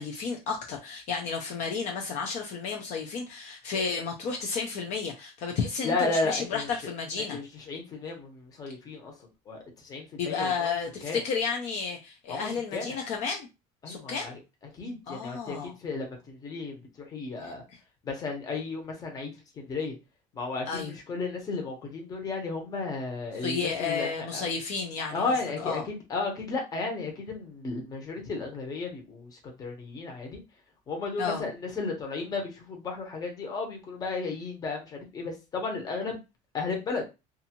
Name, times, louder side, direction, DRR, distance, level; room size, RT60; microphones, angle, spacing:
voice 1, 0.0-7.4 10.2-13.5 13.9-14.4 15.1-15.7 17.4-17.5 20.7-20.9 23.4-25.9 31.2-31.4, left 5 dB, 50° left, 0.5 m, -32 dB
voice 2, 5.8-6.7 7.3-9.1 9.5-10.7 11.0-11.2 12.3-13.0 13.8-14.4 14.7-17.6 18.0-20.0 20.3-24.4 25.1-30.4 30.9-36.2 36.5-37.1, left 3 dB, 25° left, 0.8 m, -34 dB
2.6 x 2.4 x 2.8 m
cardioid pair, 165°, 15 cm